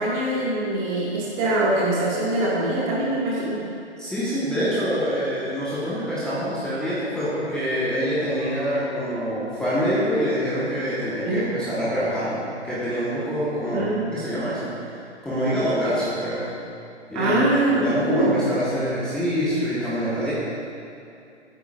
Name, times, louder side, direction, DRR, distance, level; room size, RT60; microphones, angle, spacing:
voice 1, 0.0-3.6 11.2-11.4 13.7-14.0 17.1-18.3, right 1 dB, 30° right, -7 dB, 2.4 m, -23 dB
voice 2, 4.0-16.5 17.1-17.4 17.7-20.3, equal, ahead, -11 dB, 1.5 m, -25 dB
16.0 x 8.9 x 2.6 m, 2.6 s
figure-of-eight pair, 130°, 35 cm